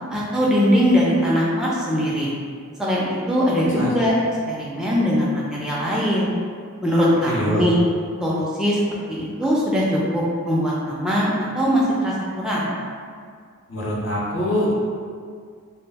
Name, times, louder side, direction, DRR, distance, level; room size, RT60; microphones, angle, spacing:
voice 1, 0.1-2.3 2.8-4.1 4.5-6.3 6.8-7.8 8.2-8.8 9.1-12.7, equal, 5° right, -6 dB, 0.3 m, -21 dB
voice 2, 7.2-7.6 13.7-14.7, left 1 dB, 60° left, -5 dB, 0.6 m, -24 dB
2.2 x 2.1 x 3.3 m, 2.1 s
head